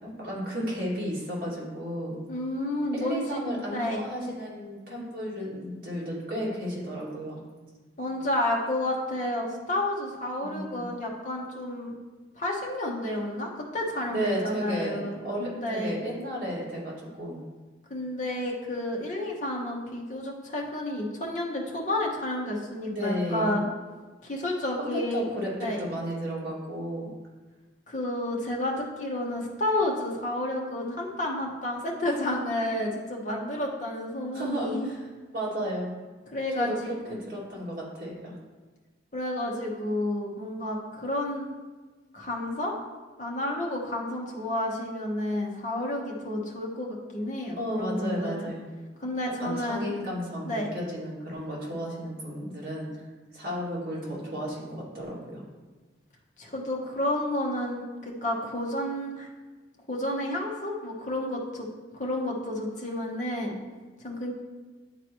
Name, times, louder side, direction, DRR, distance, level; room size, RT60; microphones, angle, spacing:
voice 1, 0.0-2.2 2.9-7.4 10.4-10.9 14.1-17.4 22.9-23.6 24.8-27.1 34.3-35.0 35.3-35.9 36.6-38.3 47.6-48.6 49.4-52.9 53.3-55.4, equal, 50° right, -6 dB, 2.1 m, -33 dB
voice 2, 2.3-3.4 3.7-4.0 8.0-11.9 12.4-16.0 17.9-23.7 24.2-25.3 25.6-25.8 27.9-34.9 36.3-37.1 39.1-41.5 42.1-42.7 43.2-48.5 49.0-49.9 50.4-50.7 56.4-59.3 59.9-61.7 61.9-63.6 64.0-64.3, left 1 dB, 40° left, -2 dB, 1.1 m, -31 dB
10.5 x 4.0 x 3.0 m, 1.3 s
head